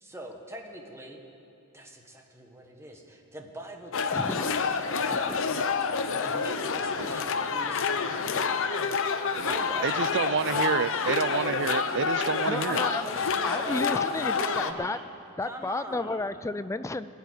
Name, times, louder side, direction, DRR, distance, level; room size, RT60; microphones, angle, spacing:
voice 1, 0.0-1.2 1.7-8.9 9.4-11.1 12.7-13.8 14.1-15.1 15.4-16.3, right 1 dB, 10° right, 2 dB, 1.4 m, -42 dB
sound 1, 3.9-14.7, left 5 dB, 60° left, 0.7 m, -28 dB
voice 2, 4.1-4.5 5.1-5.4 12.5-13.1 13.4-15.0 15.4-17.1, left 2 dB, 15° left, 14 dB, 0.3 m, -32 dB
sound 2, 4.4-5.7 6.4-6.5 6.8-7.5 8.2-8.3 9.4-9.7, right 2 dB, 80° right, 0.9 m, -44 dB
voice 3, 9.8-12.8, right 7 dB, 55° right, 16 dB, 0.4 m, -29 dB
20.0 x 7.0 x 9.5 m, 2.8 s
head